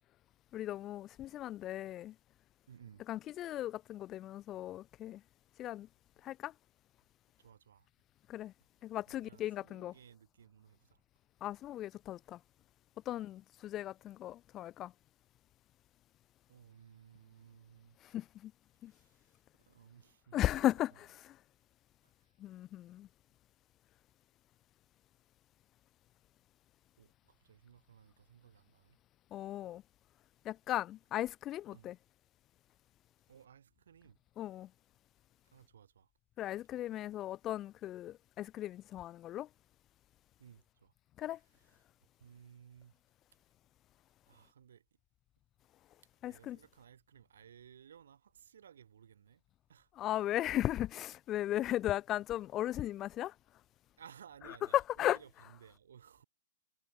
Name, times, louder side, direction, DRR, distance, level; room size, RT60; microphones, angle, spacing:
voice 1, 0.5-2.1 3.1-5.2 5.6-5.9 6.2-6.5 8.3-8.5 8.8-9.9 11.4-12.4 13.1-14.9 18.1-18.5 18.8-18.9 20.3-21.4 22.4-23.1 29.3-29.8 30.5-32.0 34.4-34.7 36.4-39.5 41.2-41.4 46.2-46.6 50.0-53.3 54.7-55.2, left 13 dB, 20° left, 0.4 m, -36 dB
voice 2, 2.7-3.0 7.4-7.9 9.1-11.0 13.1-13.3 16.5-18.0 18.9-19.4 19.7-21.0 22.2-22.3 27.0-29.0 31.7-32.0 33.3-34.2 35.5-36.1 40.4-40.9 41.7-41.8 42.2-42.9 44.3-44.8 46.2-49.4 49.7-49.9 54.0-56.2, right 8 dB, 85° right, 3.7 m, -59 dB
hypercardioid pair, 160°, 0 cm